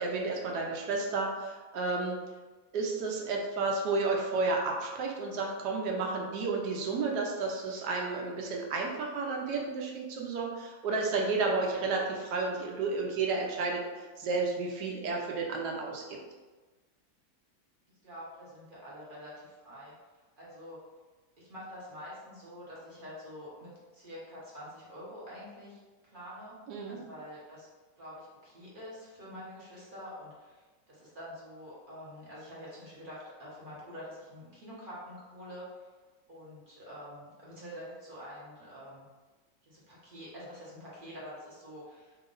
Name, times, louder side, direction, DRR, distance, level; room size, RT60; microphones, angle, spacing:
voice 1, 0.0-2.2 2.7-16.2 26.7-27.0, right 3 dB, 70° right, 0 dB, 1.1 m, -32 dB
voice 2, 18.0-19.9 20.4-20.8 21.4-26.6 26.9-27.7 28.0-35.8 36.3-39.1 39.6-42.2, equal, 35° right, -7 dB, 0.8 m, -46 dB
3.0 x 2.8 x 3.8 m, 1.3 s
omnidirectional pair, 2.1 m